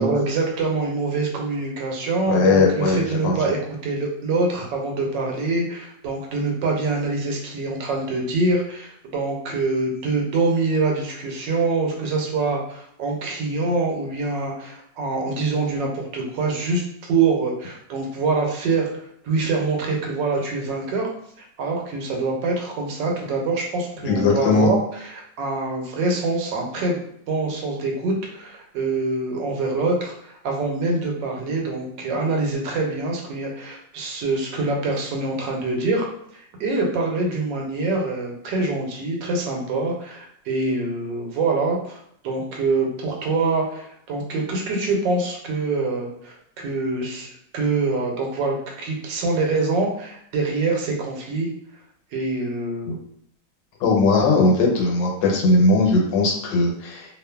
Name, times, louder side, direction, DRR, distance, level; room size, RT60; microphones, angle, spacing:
voice 1, 0.0-3.6 3.8-16.8 17.1-21.1 21.4-27.0 27.3-36.0 36.3-51.5 52.1-53.0, right 3 dB, 85° right, 0 dB, 1.3 m, -25 dB
voice 2, 2.3-3.3 24.0-24.7 52.9-53.0 53.8-57.2, left 3 dB, 80° left, 0 dB, 1.3 m, -19 dB
2.8 x 2.4 x 2.2 m, 0.70 s
omnidirectional pair, 2.0 m